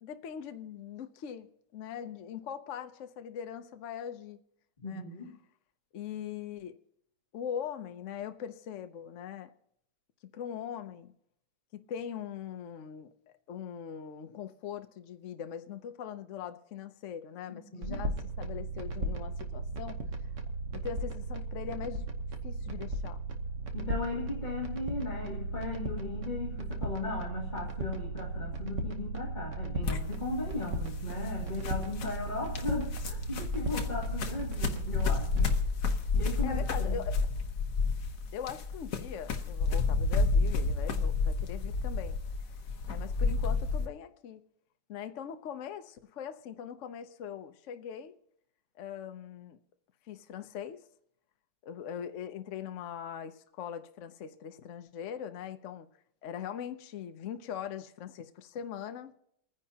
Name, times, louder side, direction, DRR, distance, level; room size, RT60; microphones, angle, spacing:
voice 1, 0.0-1.5 1.7-4.4 4.8-5.0 5.9-6.8 7.3-9.5 10.3-11.1 11.9-13.1 13.5-20.0 20.7-22.1 22.4-23.2 36.4-37.2 38.3-42.2 42.9-44.4 44.9-48.1 48.8-49.6 50.1-50.8 51.6-55.9 56.2-59.1, left 8 dB, 75° left, 0.7 m, -41 dB
voice 2, 4.8-5.4 17.5-18.0 23.7-35.5 35.9-37.0, left 3 dB, 25° left, 2.0 m, -37 dB
sound 1, 17.8-35.6, right 2 dB, 45° right, 1.2 m, -36 dB
sound 2, 29.8-43.9, left 4 dB, 50° left, 1.2 m, -31 dB
28.5 x 10.0 x 2.8 m
omnidirectional pair, 2.3 m